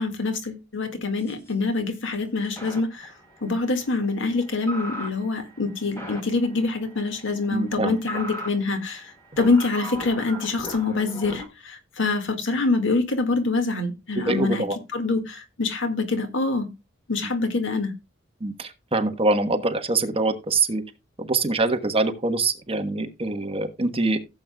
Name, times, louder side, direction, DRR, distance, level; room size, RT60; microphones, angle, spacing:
voice 1, 0.0-3.1 3.4-14.7 14.9-16.7 17.1-17.9, left 3 dB, 65° left, 1.9 m, -25 dB
sound 1, 1.2-1.5 2.6-11.5, equal, 15° left, 3.9 m, -39 dB
voice 2, 7.5-8.0 14.2-14.8 18.4-20.8 21.2-24.2, right 3 dB, 30° right, 1.2 m, -24 dB
16.0 x 7.8 x 2.3 m
head